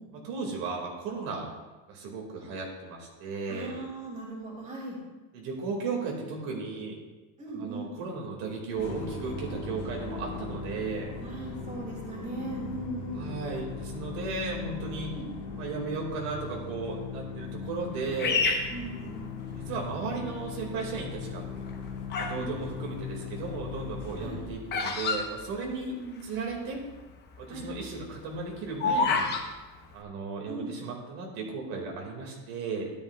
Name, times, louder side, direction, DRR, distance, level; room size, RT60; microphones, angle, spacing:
voice 1, 0.1-1.5 1.9-3.8 5.3-7.0 7.5-11.1 13.1-15.2 15.6-18.5 19.6-21.5 22.2-26.0 26.2-26.9 27.4-29.3 29.9-32.9, right 4 dB, 70° right, 0 dB, 2.1 m, -35 dB
voice 2, 3.5-5.0 7.4-7.9 11.2-13.3 15.1-15.3 18.7-19.1 22.4-22.5 24.2-24.4 25.6-26.3 27.5-27.7 30.5-30.8, right 2 dB, 20° right, -3 dB, 2.3 m, -38 dB
sound 1, 8.7-24.5, left 5 dB, 50° left, 1.9 m, -39 dB
Bird vocalization bird call bird song, 18.2-19.7 20.3-20.8 21.5-22.5 22.7-26.2 26.5-26.6 26.8-27.1 27.5-29.5, left 4 dB, 30° left, 0.9 m, -29 dB
13.0 x 10.5 x 2.3 m, 1.2 s
cardioid pair, 170°, 35 cm